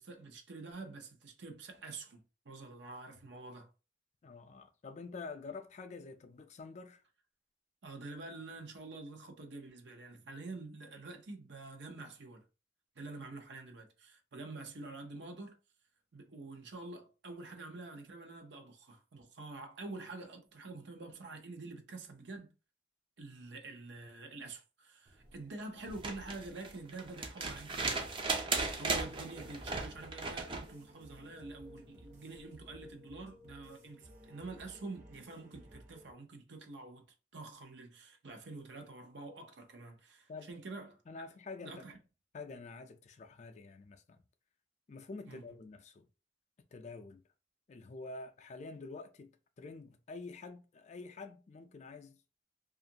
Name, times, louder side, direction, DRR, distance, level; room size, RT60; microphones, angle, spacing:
voice 1, 0.0-3.7 7.8-12.4 13.0-15.6 16.1-22.5 23.2-37.0 37.3-41.0 41.6-42.0 45.3-45.4, right 3 dB, 75° right, 0.7 m, -47 dB
voice 2, 4.2-7.0 40.3-40.5 41.1-42.0 42.3-44.2 44.9-46.1 46.7-47.2 47.7-52.4, left 3 dB, 40° left, 0.4 m, -48 dB
sound 1, 25.8-30.7 32.3-32.4, right 3 dB, 30° right, 0.4 m, -37 dB
sound 2, 28.8-36.1, equal, 45° right, 1.0 m, -56 dB
2.6 x 2.4 x 2.7 m
head